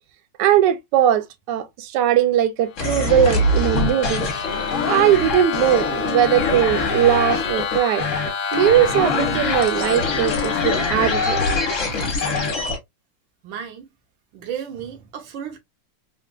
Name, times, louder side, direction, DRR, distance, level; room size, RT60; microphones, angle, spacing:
voice 1, 0.4-4.3 4.9-8.0 8.5-11.4 11.9-12.0, right 10 dB, 70° right, 1.2 m, -19 dB
sound 1, 2.7-12.4, left 7 dB, 70° left, 0.8 m, -29 dB
sound 2, 2.8-12.8, left 3 dB, 45° left, 1.2 m, -24 dB
voice 2, 13.4-13.9 14.3-15.6, right 8 dB, 90° right, 1.6 m, -33 dB
3.8 x 2.5 x 2.3 m
omnidirectional pair, 2.1 m